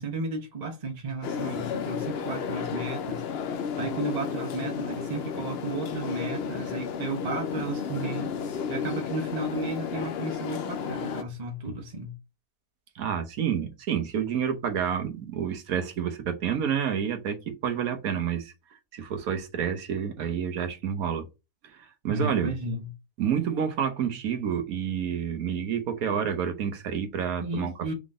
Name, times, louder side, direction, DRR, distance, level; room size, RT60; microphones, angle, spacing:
voice 1, 0.0-12.1 22.1-22.9 27.4-27.9, right 2 dB, 35° right, 0.8 m, -34 dB
sound 1, 1.2-11.2, left 7 dB, 60° left, 0.6 m, -32 dB
voice 2, 12.9-18.5 18.9-21.3 21.7-22.5 23.2-27.9, right 8 dB, 70° right, 1.3 m, -29 dB
4.9 x 3.7 x 2.5 m
omnidirectional pair, 1.6 m